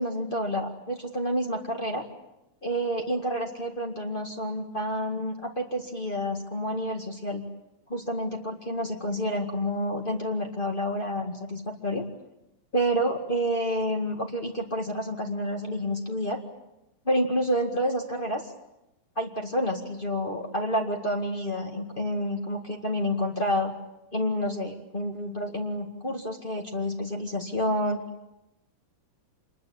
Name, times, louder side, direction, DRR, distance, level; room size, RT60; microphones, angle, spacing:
voice 1, 0.0-2.0 2.6-7.4 7.9-12.0 12.7-16.4 17.0-18.5 19.1-23.7 24.1-28.0, equal, 65° left, 1 dB, 0.5 m, -29 dB
26.5 x 22.0 x 8.6 m, 0.91 s
omnidirectional pair, 4.6 m